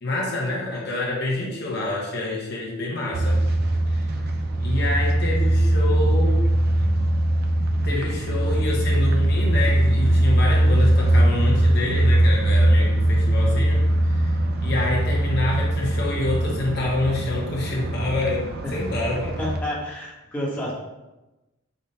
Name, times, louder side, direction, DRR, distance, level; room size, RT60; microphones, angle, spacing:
voice 1, 0.0-3.4 3.9-4.1 4.6-6.4 7.8-14.3 14.6-19.4, left 2 dB, 50° left, -3 dB, 0.8 m, -27 dB
sound 1, 3.1-19.6, right 1 dB, 45° right, 0.4 m, -21 dB
voice 2, 19.4-20.7, left 1 dB, 10° left, -6 dB, 0.9 m, -29 dB
5.2 x 2.1 x 4.1 m, 1.0 s
head